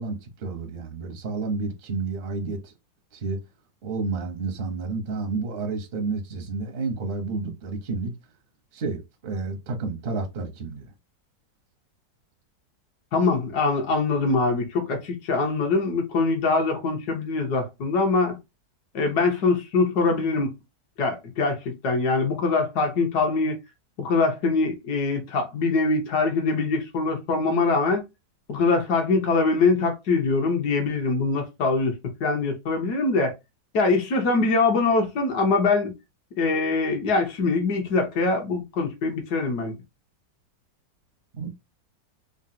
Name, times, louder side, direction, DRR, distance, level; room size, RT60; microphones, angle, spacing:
voice 1, 0.0-2.7 3.1-3.4 3.8-8.1 8.7-10.9 41.3-41.5, right 3 dB, 60° right, 0.6 m, -30 dB
voice 2, 13.1-18.4 18.9-20.5 21.0-23.6 24.0-28.0 28.5-33.3 33.7-35.9 36.4-39.8, left 3 dB, 65° left, 1.3 m, -23 dB
3.8 x 2.0 x 2.6 m
omnidirectional pair, 1.9 m